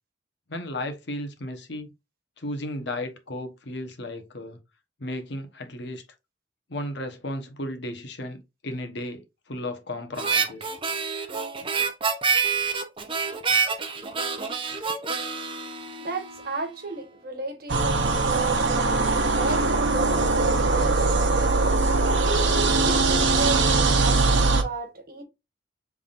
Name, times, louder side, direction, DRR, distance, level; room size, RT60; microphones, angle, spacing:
voice 1, 0.5-1.9 2.4-4.6 5.0-6.0 6.7-10.7, left 1 dB, 65° left, 1.0 m, -34 dB
Harmonica, 10.2-16.6, right 5 dB, 30° right, 0.7 m, -27 dB
voice 2, 16.0-21.2 22.0-25.2, right 3 dB, 55° right, 1.3 m, -34 dB
sound 1, 17.7-24.6, right 3 dB, 75° right, 0.9 m, -21 dB
5.5 x 3.5 x 2.5 m
head